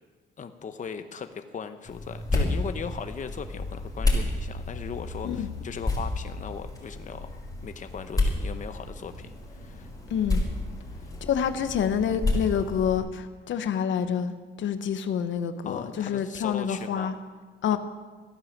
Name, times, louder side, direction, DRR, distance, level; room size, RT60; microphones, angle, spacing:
voice 1, 0.4-9.9 11.0-11.1 15.6-17.1 17.7-17.8, left 6 dB, 40° left, 8 dB, 0.9 m, -38 dB
sound 1, 1.8-13.0, left 2 dB, 20° left, 5.0 m, -31 dB
voice 2, 10.1-10.4 11.2-17.1 17.6-17.8, left 8 dB, 70° left, 10 dB, 1.1 m, -27 dB
15.0 x 10.5 x 7.4 m, 1.4 s
cardioid pair, 90°, 20 cm